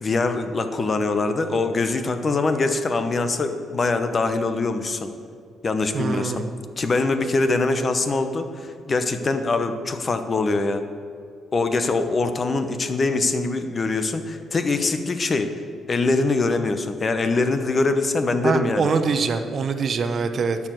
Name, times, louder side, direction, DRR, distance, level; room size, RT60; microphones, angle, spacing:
voice 1, 0.0-5.1 5.6-6.4 6.8-10.8 11.5-15.5 15.9-18.9, left 3 dB, 35° left, 8 dB, 0.9 m, -23 dB
voice 2, 5.9-6.5 18.4-20.6, right 5 dB, 50° right, 8 dB, 0.8 m, -24 dB
12.0 x 4.9 x 7.7 m, 2.3 s
cardioid pair, 90°, 0 cm